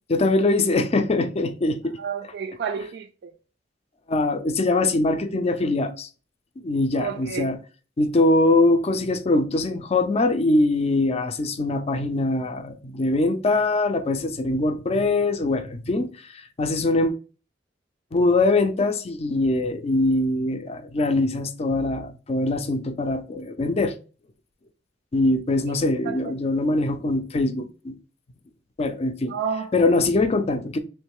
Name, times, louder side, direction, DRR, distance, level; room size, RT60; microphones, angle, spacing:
voice 1, 0.1-2.0 4.1-6.1 6.6-7.6 8.0-17.1 18.1-23.9 25.1-28.0 28.8-29.3 29.7-30.8, left 2 dB, 35° left, 0.4 m, -22 dB
voice 2, 2.0-3.3 6.9-7.5 26.0-26.3 29.3-29.7, right 6 dB, 60° right, 0.4 m, -30 dB
3.1 x 3.1 x 3.5 m
head